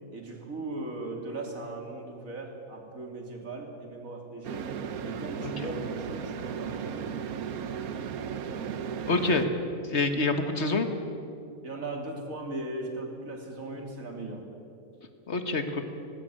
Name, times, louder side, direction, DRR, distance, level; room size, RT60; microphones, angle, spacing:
voice 1, 0.1-4.7 5.0-7.0 9.1-9.2 11.6-14.4, right 2 dB, 70° right, 2 dB, 3.2 m, -38 dB
sound 1, 4.4-9.5, right 7 dB, 85° right, 1.4 m, -35 dB
voice 2, 9.0-9.5 9.9-10.9 15.3-15.8, left 3 dB, 50° left, 7 dB, 1.8 m, -26 dB
19.5 x 17.0 x 8.9 m, 2.6 s
omnidirectional pair, 1.5 m